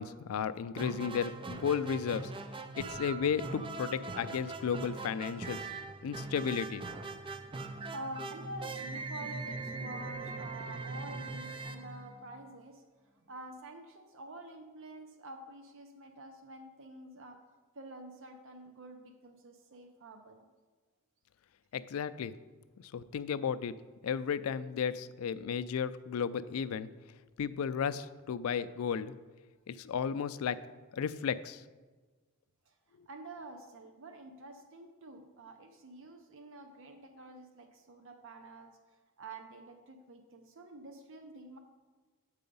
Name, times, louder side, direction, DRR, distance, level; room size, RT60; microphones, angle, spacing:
voice 1, 0.0-2.3 2.8-5.6 6.0-6.8 21.7-22.3 22.8-23.7 24.0-26.9 27.4-29.1 29.7-30.6 30.9-31.6, left 7 dB, 80° left, 14 dB, 0.4 m, -34 dB
sound 1, 0.7-12.6, right 3 dB, 25° right, 0.4 m, -41 dB
voice 2, 7.6-12.8 13.3-17.4 17.7-20.5 32.7-32.8 33.1-38.8 39.2-41.6, right 2 dB, 65° right, 6 dB, 0.6 m, -48 dB
7.7 x 4.8 x 5.4 m, 1.3 s
head